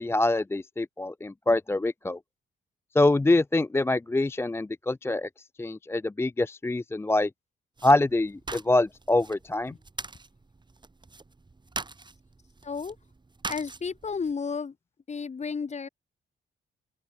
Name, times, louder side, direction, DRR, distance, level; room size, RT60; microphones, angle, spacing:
voice 1, 0.0-2.2 2.9-5.3 5.6-7.3 7.8-9.7, left 2 dB, 10° left, 0.5 m, -25 dB
sound 1, 7.8-14.3, right 3 dB, 25° right, 3.0 m, -42 dB
voice 2, 12.6-13.0 13.5-14.7 15.1-15.9, left 5 dB, 35° left, 1.5 m, -32 dB
open air
cardioid pair, 85°, 20 cm